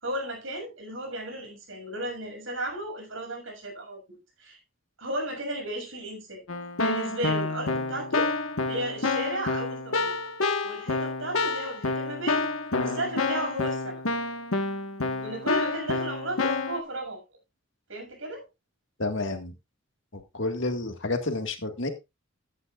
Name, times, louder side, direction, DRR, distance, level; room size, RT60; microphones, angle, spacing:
voice 1, 0.0-4.6 5.0-6.4 6.8-8.3 8.7-10.1 10.6-12.5 12.8-14.0 15.2-17.2 17.9-18.4, right 1 dB, 75° right, 6.5 m, -34 dB
Keyboard (musical), 6.5-16.8, left 3 dB, 90° left, 1.6 m, -28 dB
voice 2, 19.0-19.5 20.1-21.9, left 2 dB, 65° left, 1.9 m, -30 dB
14.5 x 9.8 x 2.5 m
head